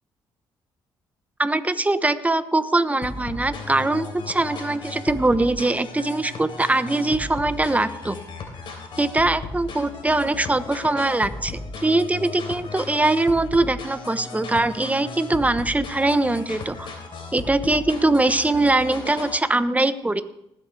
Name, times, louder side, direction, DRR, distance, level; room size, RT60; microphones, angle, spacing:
voice 1, 1.4-8.2 9.0-16.9 17.3-20.2, right 2 dB, 15° right, 12 dB, 1.0 m, -22 dB
sound 1, 3.0-19.4, left 3 dB, 60° left, 3.4 m, -36 dB
19.5 x 8.5 x 3.4 m, 0.81 s
supercardioid pair, 55°, 10 cm